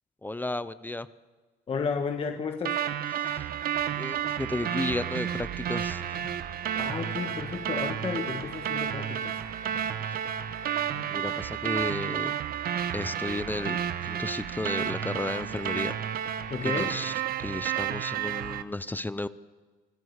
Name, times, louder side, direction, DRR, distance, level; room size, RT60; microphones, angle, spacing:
voice 1, 0.2-1.1 3.2-3.5 3.9-6.0 11.1-12.3 12.9-15.9 16.6-17.1 17.4-19.3, left 2 dB, 10° left, 15 dB, 0.6 m, -33 dB
voice 2, 1.7-2.8 6.8-9.4 16.5-17.0, left 5 dB, 35° left, 4 dB, 1.4 m, -32 dB
sound 1, 2.7-18.6, right 9 dB, 60° right, 1.1 m, -31 dB
sound 2, 6.1-6.4 7.2-7.5 8.3-8.6 9.6-10.0 10.9-11.2 12.2-12.5 13.5-13.9, left 3 dB, 55° left, 6.4 m, -49 dB
25.5 x 14.0 x 8.1 m, 1.4 s
cardioid pair, 110°, 17 cm